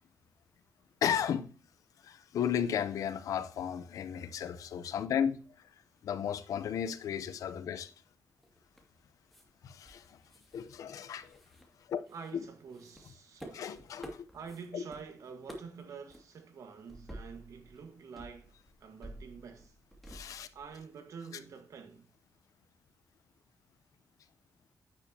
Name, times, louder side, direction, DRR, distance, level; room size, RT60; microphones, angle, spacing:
voice 1, 1.0-1.5 2.0-5.4 6.0-7.9 9.6-10.2 10.5-11.4 11.9-12.0 12.3-12.4 13.5-14.3 14.7-14.8 20.1-20.5, left 8 dB, 85° left, 0.8 m, -34 dB
sound 1, 8.4-9.0 9.3-9.5 9.9-10.7 11.0-12.3 12.7-15.0 15.3-15.8 16.1-16.2 16.9-17.8 18.2-20.8, equal, ahead, 2.4 m, -50 dB
voice 2, 12.1-13.7 14.3-19.7 20.5-22.0, right 5 dB, 75° right, 1.6 m, -47 dB
9.8 x 8.6 x 2.9 m
cardioid pair, 95°, 6 cm